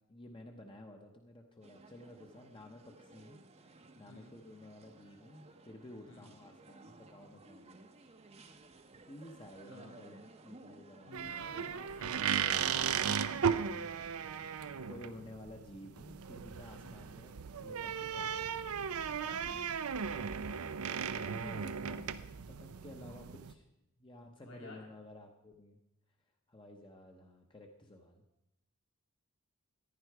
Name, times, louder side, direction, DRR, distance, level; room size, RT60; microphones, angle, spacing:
voice 1, 0.0-7.8 9.1-11.4 14.8-18.6 21.1-23.6 24.0-25.8 26.5-28.2, left 1 dB, 25° left, 3 dB, 0.9 m, -53 dB
sound 1, 1.6-14.0, right 2 dB, 30° right, 0.8 m, -57 dB
voice 2, 9.7-10.0 11.0-13.1 16.8-17.1 19.2-19.6 23.0-23.3 24.4-24.8, left 2 dB, 70° left, 0 dB, 4.6 m, -52 dB
sound 2, 11.1-23.5, right 7 dB, 80° right, 0.6 m, -36 dB
14.5 x 10.5 x 4.7 m, 0.90 s
head